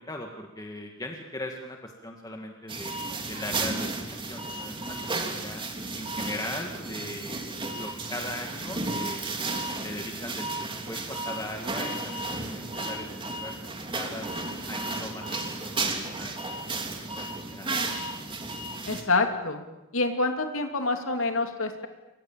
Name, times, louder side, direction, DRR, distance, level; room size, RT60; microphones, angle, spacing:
voice 1, 0.0-2.9 3.3-3.9 4.3-5.6 6.0-7.4 7.8-9.2 9.8-13.5 13.9-14.3 14.7-16.3 17.1-17.7, left 1 dB, 20° left, 2 dB, 2.0 m, -39 dB
sound 1, 2.7-19.0, right 2 dB, 25° right, 3.3 m, -33 dB
voice 2, 18.9-19.6 19.9-21.9, left 3 dB, 85° left, 5 dB, 2.9 m, -27 dB
29.0 x 24.0 x 7.4 m, 0.96 s
head